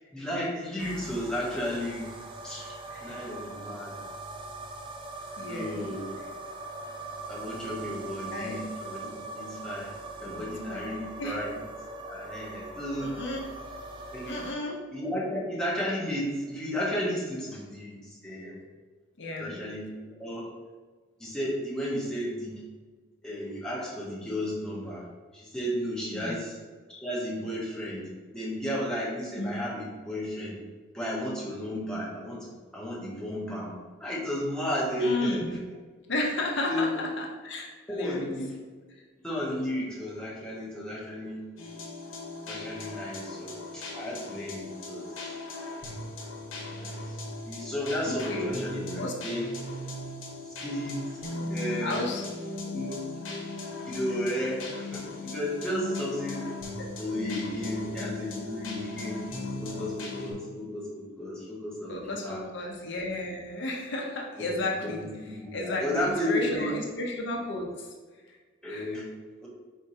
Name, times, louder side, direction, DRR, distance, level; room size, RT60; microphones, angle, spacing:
voice 1, 0.0-2.1 2.4-2.8 3.0-4.0 5.5-6.2 7.3-9.9 10.2-11.5 12.0-13.2 14.1-14.4 14.9-18.6 19.4-19.9 20.2-20.5 21.2-22.6 23.2-25.0 25.3-26.5 26.9-30.6 30.9-32.5 32.7-35.6 36.7-36.9 37.9-38.5 39.2-41.4 42.5-45.1 46.6-47.2 47.4-49.5 50.6-51.0 51.5-52.0 52.7-53.0 53.9-56.5 57.0-59.2 59.6-62.4 64.5-65.1 65.4-66.7 68.6-69.1 69.4-69.5, left 1 dB, 5° left, -7 dB, 1.1 m, -33 dB
sound 1, 0.8-14.5, right 2 dB, 25° right, 0.5 m, -41 dB
voice 2, 5.4-5.9 8.3-8.7 10.2-11.4 13.0-13.5 14.3-14.8 19.2-19.6 26.1-26.4 29.4-29.7 35.0-35.6 36.1-38.3 48.1-48.6 49.0-49.1 51.8-52.3 58.0-58.1 61.9-67.9 68.3-68.4 68.7-69.0, left 1 dB, 65° left, 0 dB, 0.7 m, -33 dB
sound 2, 41.6-60.3, left 2 dB, 85° left, 0.9 m, -38 dB
4.4 x 3.5 x 2.7 m, 1.4 s
head